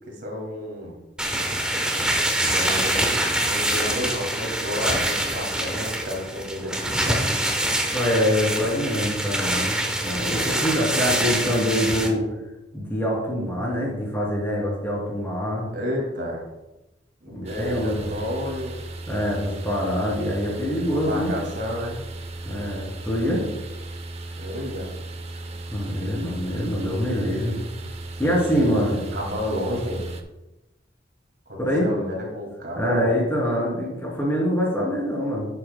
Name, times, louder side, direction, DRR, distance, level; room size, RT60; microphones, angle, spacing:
voice 1, 0.1-1.0 2.5-3.1 3.4-7.3 15.7-16.4 17.2-18.7 21.0-22.0 24.4-24.9 28.5-30.1 31.5-33.1, left 1 dB, 60° right, 0 dB, 2.2 m, -31 dB
sound 1, 1.2-12.1, right 1 dB, 5° right, 1.0 m, -25 dB
voice 2, 7.9-12.2 12.7-15.7 17.3-18.1 19.1-21.3 22.4-23.4 25.7-27.5 28.2-29.0 31.6-31.9 32.8-35.5, equal, 15° left, -4 dB, 2.9 m, -24 dB
sound 2, 17.4-30.2, right 2 dB, 35° right, 0.7 m, -36 dB
11.0 x 7.9 x 2.2 m, 0.99 s
head